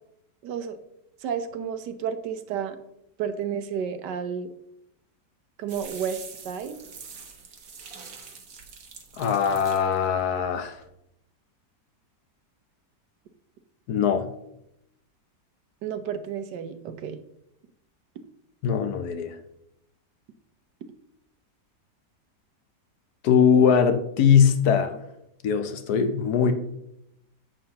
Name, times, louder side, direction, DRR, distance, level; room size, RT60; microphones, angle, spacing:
voice 1, 0.4-0.8 1.2-2.8 3.2-4.5 5.6-6.2 6.4-6.7 15.8-17.2, right 7 dB, 80° right, 1.4 m, -31 dB
sound 1, 5.7-10.9, right 5 dB, 60° right, 1.6 m, -45 dB
voice 2, 9.2-10.8 13.9-14.3 18.6-19.4 23.2-25.0 25.4-26.5, left 7 dB, 70° left, 1.2 m, -21 dB
10.0 x 7.9 x 2.9 m
omnidirectional pair, 1.8 m